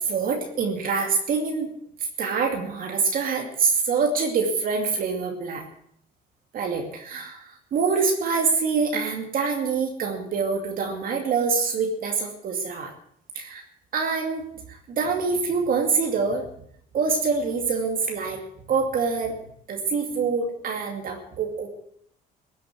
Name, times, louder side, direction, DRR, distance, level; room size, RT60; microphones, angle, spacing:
voice 1, 0.0-1.7 2.2-5.6 6.5-12.9 13.3-13.6 13.9-16.4 16.9-18.4 18.7-19.3 19.7-21.7, right 5 dB, 55° right, 2 dB, 2.4 m, -25 dB
16.5 x 8.4 x 7.8 m, 0.67 s
cardioid pair, 110°, 17 cm